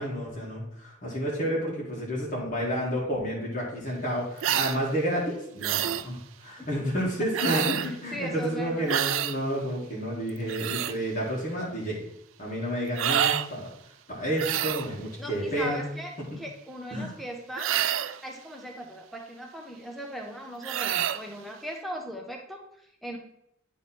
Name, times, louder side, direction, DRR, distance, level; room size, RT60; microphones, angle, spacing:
voice 1, 0.0-12.0 12.4-13.7 14.1-15.9 16.9-17.1, equal, 40° left, -5 dB, 1.6 m, -30 dB
sound 1, 4.4-4.8 5.6-6.1 7.3-7.9 8.9-9.4 10.3-10.9 12.9-13.5 14.4-14.9 17.6-18.2 20.6-21.2, right 11 dB, 85° right, 0.4 m, -27 dB
voice 2, 7.7-9.0 15.2-17.8 18.2-23.2, equal, ahead, 1 dB, 0.8 m, -39 dB
9.6 x 3.3 x 4.2 m, 0.74 s
head